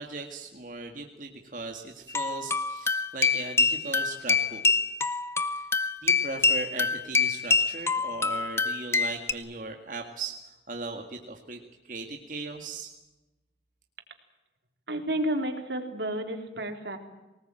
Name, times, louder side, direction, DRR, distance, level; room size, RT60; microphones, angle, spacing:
voice 1, 0.0-4.6 5.4-5.7 6.0-13.0, right 3 dB, 45° right, 2 dB, 2.0 m, -38 dB
sound 1, 2.1-9.3, left 4 dB, 15° left, 0.8 m, -26 dB
voice 2, 14.9-17.0, right 1 dB, 75° right, 5 dB, 3.5 m, -31 dB
24.5 x 19.0 x 9.1 m, 1.1 s
head